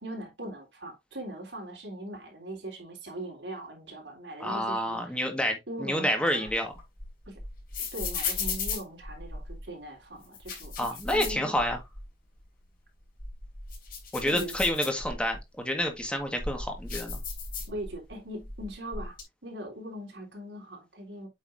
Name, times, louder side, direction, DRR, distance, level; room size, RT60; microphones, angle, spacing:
voice 1, 0.0-5.2 5.7-6.5 7.3-7.4 7.9-11.5 14.2-14.6 17.7-21.3, right 1 dB, 85° right, 3.6 m, -40 dB
voice 2, 4.4-6.7 10.8-11.8 14.1-17.2, equal, 5° left, 1.7 m, -29 dB
sound 1, 6.2-9.6 10.2-12.1 12.4-12.5 13.0-15.4 16.0-18.1 18.4-19.2, left 4 dB, 55° left, 3.6 m, -36 dB
8.2 x 5.6 x 2.7 m
head